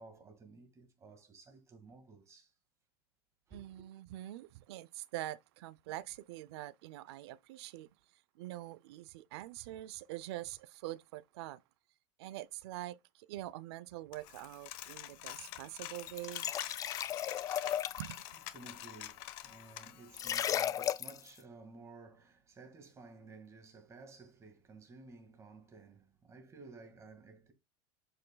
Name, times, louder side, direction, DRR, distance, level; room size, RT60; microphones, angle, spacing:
voice 1, 0.0-2.5 3.5-3.8 17.6-18.0 18.5-27.5, right 3 dB, 20° right, 1.9 m, -55 dB
voice 2, 3.5-7.9 8.4-11.6 12.2-16.5 18.0-18.4, right 15 dB, 75° right, 0.6 m, -45 dB
Coin (dropping), 14.1-20.3, left 15 dB, 60° left, 1.1 m, -47 dB
sound 1, 16.1-18.2 20.1-21.3, left 10 dB, 25° left, 0.4 m, -35 dB
7.7 x 6.4 x 2.3 m
supercardioid pair, 135°, 14 cm